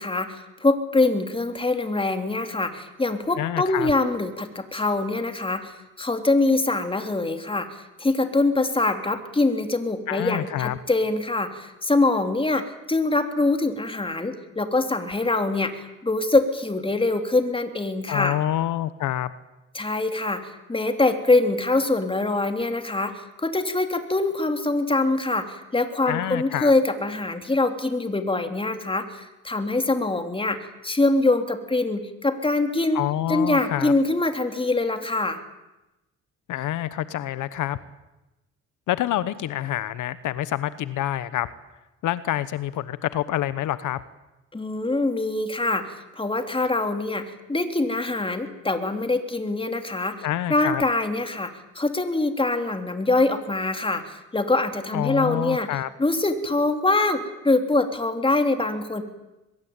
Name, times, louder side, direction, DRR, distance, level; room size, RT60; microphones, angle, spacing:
voice 1, 0.0-18.4 19.7-33.0 33.3-35.4 44.5-50.2 50.5-55.7 56.0-59.0, left 2 dB, 15° left, 7 dB, 3.4 m, -24 dB
voice 2, 3.4-3.9 10.1-10.8 18.1-19.3 26.1-26.7 32.9-33.9 36.5-37.8 38.9-41.5 42.0-44.0 50.2-50.8 54.9-55.9, left 13 dB, 80° left, 15 dB, 1.1 m, -27 dB
23.5 x 22.0 x 9.0 m, 1.0 s
cardioid pair, 90°, 30 cm